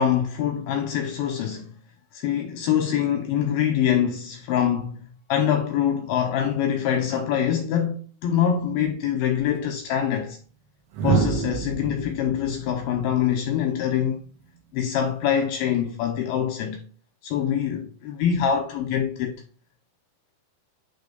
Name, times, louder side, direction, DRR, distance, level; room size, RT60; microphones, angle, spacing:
voice 1, 0.0-1.7 2.1-5.0 5.3-10.4 11.0-14.2 14.7-16.8 17.2-19.4, left 9 dB, 80° left, 2.3 m, -24 dB
sound 1, 9.4-9.6 10.9-14.0 15.5-15.8, right 5 dB, 80° right, 3.3 m, -28 dB
9.2 x 3.5 x 4.0 m
omnidirectional pair, 5.1 m